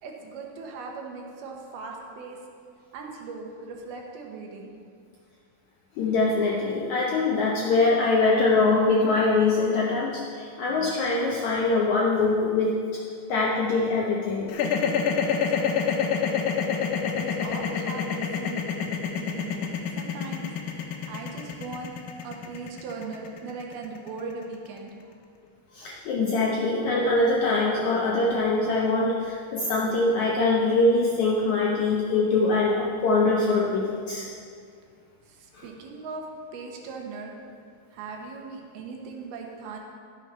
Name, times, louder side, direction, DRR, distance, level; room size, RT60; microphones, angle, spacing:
voice 1, 0.0-2.4 2.9-4.7 15.3-16.3 17.2-20.5 21.1-21.9 22.2-24.9 35.3-36.2 36.5-37.3 37.9-39.8, right 4 dB, 75° right, 1 dB, 3.0 m, -39 dB
voice 2, 6.0-12.8 13.3-14.5 25.7-34.3 35.5-35.7, left 3 dB, 70° left, -4 dB, 1.8 m, -23 dB
sound 1, 14.5-24.7, left 7 dB, 90° left, 3.0 m, -27 dB
12.0 x 7.7 x 5.7 m, 2.3 s
omnidirectional pair, 4.6 m